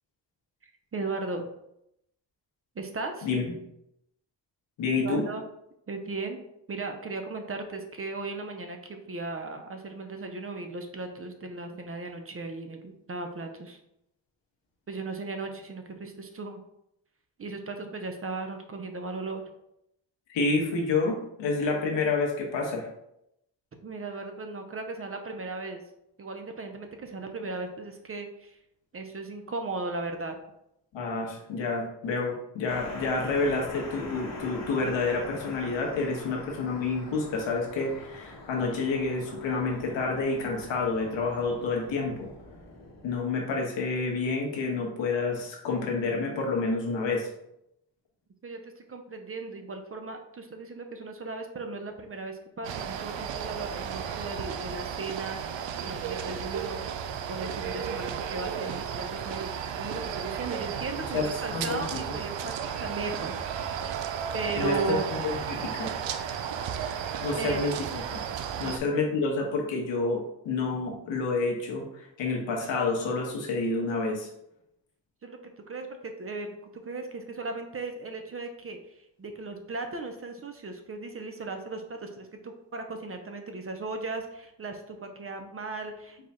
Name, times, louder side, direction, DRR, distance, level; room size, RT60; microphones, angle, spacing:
voice 1, 0.9-1.4 2.8-3.3 5.0-5.4 5.9-6.4 6.7-13.8 14.9-16.6 17.4-19.4 23.8-25.8 26.2-28.6 28.9-30.4 48.4-55.4 55.7-56.8 57.3-63.7 64.3-65.1 67.4-67.7 68.6-68.8 75.2-75.4 75.7-76.5 76.8-78.8 79.2-86.3, right 3 dB, 30° right, 5 dB, 0.6 m, -36 dB
voice 2, 4.8-5.2 20.3-22.9 30.9-42.3 43.0-47.3 61.1-62.0 64.6-65.0 65.2-65.9 67.2-68.2 68.6-74.3, left 3 dB, 90° left, 0 dB, 1.2 m, -29 dB
sound 1, 32.7-43.2, left 2 dB, 40° left, 1.0 m, -44 dB
sound 2, 52.6-68.8, right 8 dB, 85° right, 0.5 m, -34 dB
4.8 x 2.3 x 4.2 m, 0.80 s
cardioid pair, 100°, 44 cm